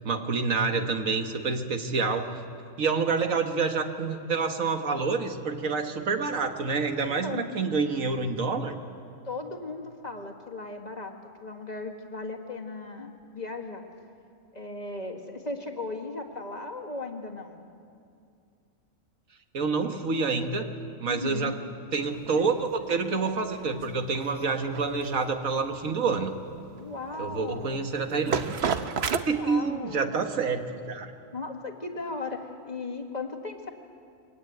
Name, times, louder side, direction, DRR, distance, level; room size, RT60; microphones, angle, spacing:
voice 1, 0.0-2.4 2.8-8.7 19.5-20.7 21.0-21.6 21.9-26.3 27.2-28.5 29.3-31.1, right 4 dB, 75° right, 6 dB, 1.8 m, -28 dB
voice 2, 7.0-7.4 9.3-13.8 14.5-17.7 21.0-21.6 26.8-27.9 29.2-30.2 31.3-33.7, left 3 dB, 30° left, 2 dB, 1.8 m, -37 dB
sound 1, 22.1-29.2, right 6 dB, 55° right, 1.1 m, -33 dB
23.0 x 17.0 x 9.2 m, 2.4 s
omnidirectional pair, 1.4 m